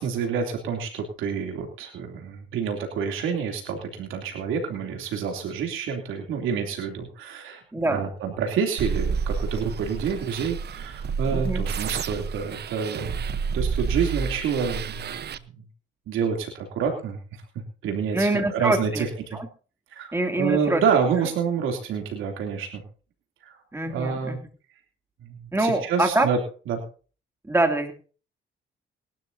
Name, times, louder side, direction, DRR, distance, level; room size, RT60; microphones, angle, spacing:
voice 1, 0.0-13.3 13.5-15.1 16.1-17.2 17.8-19.4 19.9-22.8 23.4-24.4 25.2-26.4 26.7-26.8, right 6 dB, 85° right, 3 dB, 3.1 m, -28 dB
voice 2, 7.7-8.0 11.3-11.6 18.1-19.0 19.3-19.5 20.1-20.8 23.7-24.4 25.5-26.3 27.4-27.9, right 2 dB, 10° right, 5 dB, 2.8 m, -24 dB
sound 1, 8.8-15.4, right 6 dB, 55° right, 1.0 m, -29 dB
21.0 x 12.5 x 2.8 m, 0.38 s
cardioid pair, 90°, 20 cm